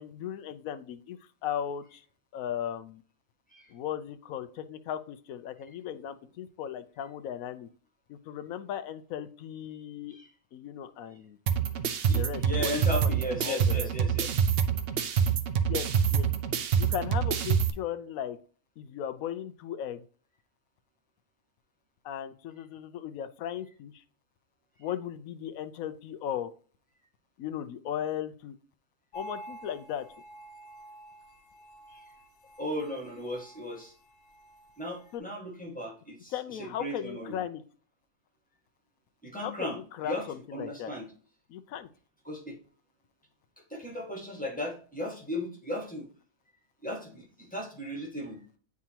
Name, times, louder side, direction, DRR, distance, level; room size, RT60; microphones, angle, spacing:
voice 1, 0.0-2.0 2.3-3.0 3.7-7.7 8.1-10.2 10.5-11.4 12.1-13.1 13.4-13.9 15.7-16.3 16.8-18.4 18.8-20.0 22.0-23.9 24.8-26.5 27.4-28.5 29.1-30.0 35.1-35.2 36.3-37.6 39.4-39.7 40.0-40.9 41.5-41.9, left 10 dB, 75° left, 11 dB, 1.0 m, -37 dB
sound 1, 11.5-17.7, right 7 dB, 55° right, 0.7 m, -26 dB
voice 2, 12.1-14.4 16.7-16.8 31.9-32.0 32.6-33.9 34.8-37.4 39.2-41.1 42.2-42.6 43.7-46.1 46.8-48.4, left 1 dB, 5° left, -1 dB, 1.6 m, -36 dB
sound 2, 29.1-35.2, right 1 dB, 40° left, 1.3 m, -49 dB
9.4 x 3.6 x 2.8 m, 0.42 s
omnidirectional pair, 1.5 m